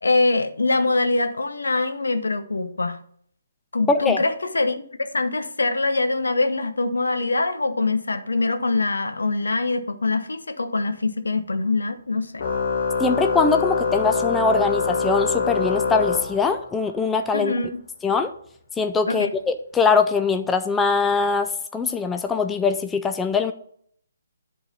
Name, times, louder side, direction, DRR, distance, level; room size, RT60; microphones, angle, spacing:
voice 1, 0.0-3.0 3.7-4.8 5.1-12.4 17.3-17.8 19.1-19.3, left 3 dB, 70° left, 8 dB, 0.9 m, -23 dB
voice 2, 3.9-4.2 13.0-17.5 18.0-18.3 18.8-23.5, left 4 dB, 10° left, 7 dB, 0.4 m, -22 dB
Organ, 12.4-16.9, left 5 dB, 50° left, 1.3 m, -24 dB
10.5 x 3.9 x 5.1 m, 0.62 s
figure-of-eight pair, 135°, 0 cm